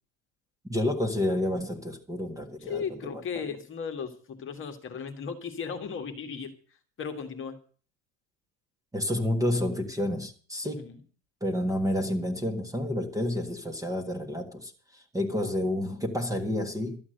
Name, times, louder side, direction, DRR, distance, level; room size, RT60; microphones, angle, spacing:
voice 1, 0.7-3.4 8.9-10.8 11.4-17.0, left 1 dB, 5° right, 1.5 m, -30 dB
voice 2, 2.6-6.5 7.0-7.6 10.6-11.0, left 6 dB, 25° left, 1.7 m, -36 dB
13.0 x 8.5 x 7.8 m
supercardioid pair, 150°, 47 cm